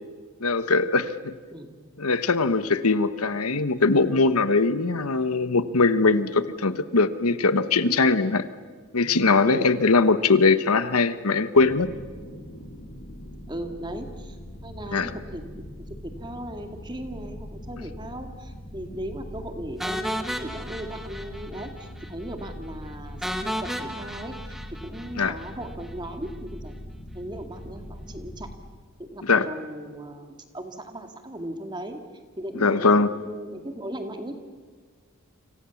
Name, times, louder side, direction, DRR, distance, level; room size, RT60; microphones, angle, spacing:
voice 1, 0.4-1.4 2.0-8.4 8.9-11.9 14.9-15.1 25.2-25.3 29.2-29.5 32.6-33.2, left 3 dB, 85° left, 13 dB, 1.2 m, -21 dB
sound 1, 11.5-28.5, equal, 45° left, 6.8 m, -41 dB
voice 2, 13.5-14.4 14.6-15.9 16.2-24.6 24.8-26.7 27.1-28.5 29.0-32.0 32.4-34.3, right 1 dB, 20° right, 6 dB, 2.2 m, -37 dB
sound 2, 19.8-21.7 22.0-22.1 22.4-22.5 23.2-25.5, equal, ahead, 1.5 m, -33 dB
29.5 x 26.0 x 7.2 m, 1.5 s
head